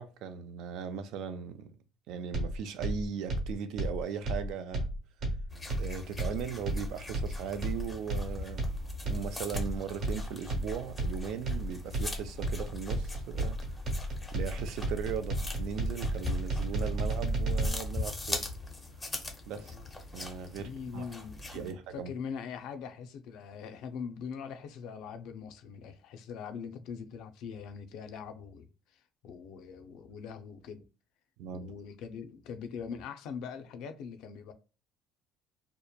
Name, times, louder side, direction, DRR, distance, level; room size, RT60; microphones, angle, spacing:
voice 1, 0.0-1.8 2.1-4.9 5.8-8.7 9.1-13.6 14.3-18.5 19.5-19.7 20.1-21.1 21.5-22.1 31.4-31.7, right 7 dB, 70° right, 0.4 m, -38 dB
sound 1, 2.3-17.7, right 1 dB, 45° right, 1.0 m, -33 dB
sound 2, 5.5-21.7, left 2 dB, 10° left, 0.5 m, -41 dB
voice 2, 19.6-19.9 20.6-30.8 31.5-34.5, left 6 dB, 70° left, 0.4 m, -42 dB
2.8 x 2.1 x 2.2 m
cardioid pair, 140°, 0 cm